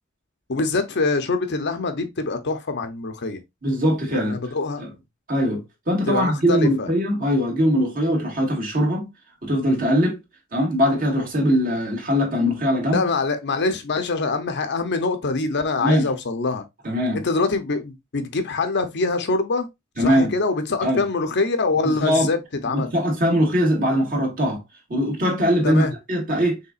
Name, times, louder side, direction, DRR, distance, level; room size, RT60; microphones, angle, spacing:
voice 1, 0.5-3.4 4.1-4.8 6.1-6.9 7.2-7.3 12.9-16.6 17.2-19.7 20.0-22.4 22.6-22.9 25.6-25.9, left 3 dB, 55° left, 0.7 m, -24 dB
voice 2, 3.6-4.4 4.8-4.9 5.3-9.1 9.4-10.2 10.5-13.1 15.8-16.1 16.8-17.2 20.0-20.3 20.8-21.0 21.8-22.3 22.7-24.6 24.9-26.6, equal, 45° right, 1.9 m, -21 dB
5.5 x 3.6 x 2.4 m
head